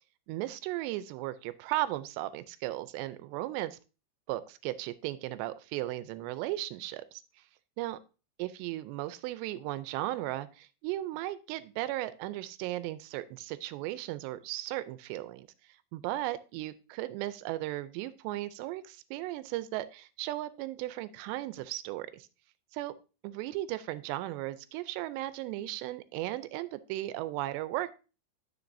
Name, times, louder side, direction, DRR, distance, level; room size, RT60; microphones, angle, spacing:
voice 1, 0.3-3.8 4.3-7.2 7.8-8.0 8.4-15.5 15.9-22.3 22.7-22.9 23.2-28.0, right 16 dB, 85° right, 14 dB, 2.7 m, -36 dB
10.0 x 6.5 x 2.6 m, 0.32 s
omnidirectional pair, 5.0 m